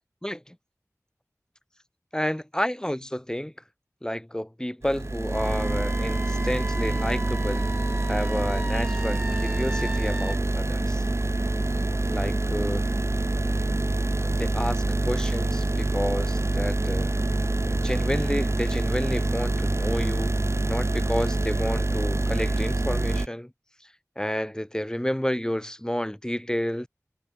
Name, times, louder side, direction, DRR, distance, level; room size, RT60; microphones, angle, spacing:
voice 1, 0.2-0.6 2.1-3.5 4.0-7.7 8.1-11.1 12.1-13.0 14.2-17.1 17.6-20.4 20.7-23.5 24.2-26.9, equal, 10° left, 3.6 m, -30 dB
sound 1, 4.8-23.3, right 2 dB, 50° right, 1.7 m, -26 dB
Wind instrument woodwind instrument, 5.3-10.4, right 1 dB, 15° right, 7.8 m, -38 dB
wide cardioid pair, 50°, 6 cm